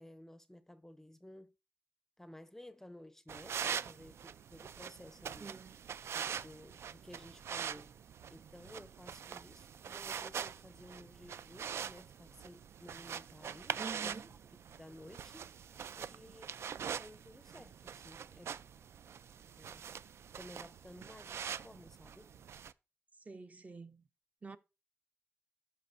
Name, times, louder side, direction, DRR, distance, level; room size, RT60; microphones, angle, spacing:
voice 1, 0.0-1.5 2.2-5.5 6.1-8.0 8.3-14.2 14.7-16.5 16.8-18.6 19.5-19.8 20.3-22.3, left 1 dB, 10° left, 0.5 m, -55 dB
sound 1, 3.3-22.7, right 7 dB, 70° right, 0.4 m, -44 dB
voice 2, 5.4-5.8 13.8-14.3 23.2-24.0 24.4-24.6, right 4 dB, 35° right, 0.7 m, -47 dB
13.5 x 5.5 x 2.6 m
cardioid pair, 90°, 5 cm